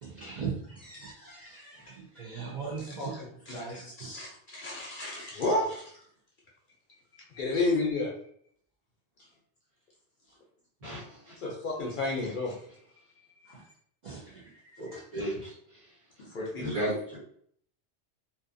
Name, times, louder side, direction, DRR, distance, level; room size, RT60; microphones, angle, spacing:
voice 1, 0.0-3.1 3.5-4.4 5.5-5.6 7.5-7.8 11.4-11.8 13.5-13.6 14.0-14.4 14.7-15.3 16.2-16.5 16.8-16.9, right 4 dB, 50° right, -5 dB, 0.5 m, -39 dB
voice 2, 2.6-3.8 4.1-5.6 7.3-8.1 11.4-12.6 14.8-15.3 16.3-16.9, left 3 dB, 60° left, -3 dB, 0.6 m, -33 dB
voice 3, 10.8-11.4 15.1-15.5 16.6-17.2, right 1 dB, 35° right, -6 dB, 1.0 m, -36 dB
2.5 x 2.4 x 2.5 m, 0.64 s
omnidirectional pair, 1.2 m